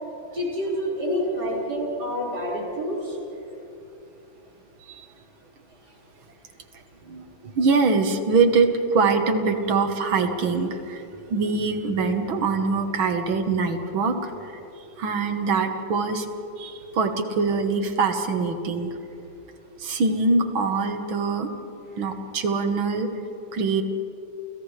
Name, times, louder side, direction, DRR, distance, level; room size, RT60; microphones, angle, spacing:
voice 1, 0.3-3.2, equal, 50° right, -5 dB, 5.6 m, -27 dB
voice 2, 7.1-14.6 15.0-16.3 16.6-18.9 19.8-21.5 22.0-23.1 23.5-23.8, right 4 dB, 70° right, 6 dB, 2.2 m, -23 dB
29.5 x 29.0 x 3.3 m, 2.8 s
omnidirectional pair, 2.3 m